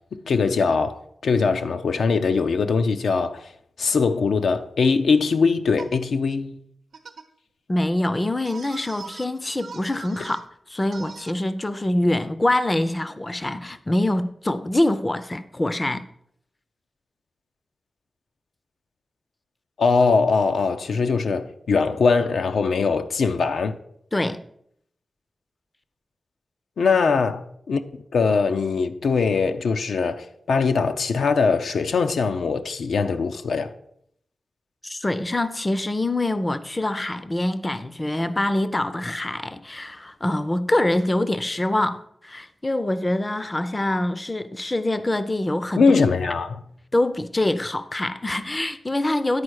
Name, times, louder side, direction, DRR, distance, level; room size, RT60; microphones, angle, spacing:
voice 1, 0.1-3.5 3.8-6.6 19.8-23.8 26.8-27.8 28.1-33.7 45.8-46.6, left 4 dB, 90° left, 0.5 m, -21 dB
sound 1, 5.8-6.0 6.9-7.3 8.4-9.2 9.6-10.4 10.9-11.3, right 5 dB, 80° right, 0.8 m, -41 dB
voice 2, 7.7-16.0 24.1-24.4 34.8-45.8 46.9-49.4, left 1 dB, 20° left, 0.4 m, -25 dB
9.8 x 4.4 x 6.3 m
wide cardioid pair, 110°, 0 cm